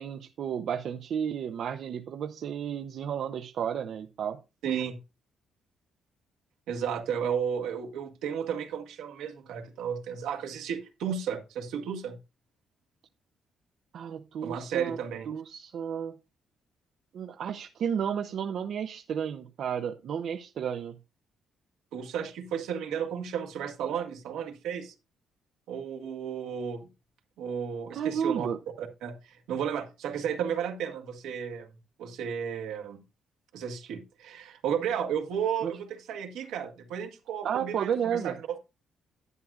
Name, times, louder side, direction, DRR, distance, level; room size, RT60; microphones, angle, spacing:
voice 1, 0.0-4.4 13.9-15.0 15.3-16.2 17.1-21.0 27.9-28.6 35.6-35.7 37.4-38.4, right 8 dB, 65° right, 0.6 m, -32 dB
voice 2, 4.6-5.0 6.7-12.2 14.4-15.3 21.9-24.9 25.7-26.9 27.4-28.5 28.8-31.7 32.0-33.0 33.5-38.3, right 8 dB, 90° right, 1.7 m, -33 dB
11.0 x 9.8 x 2.4 m
cardioid pair, 90°, 0 cm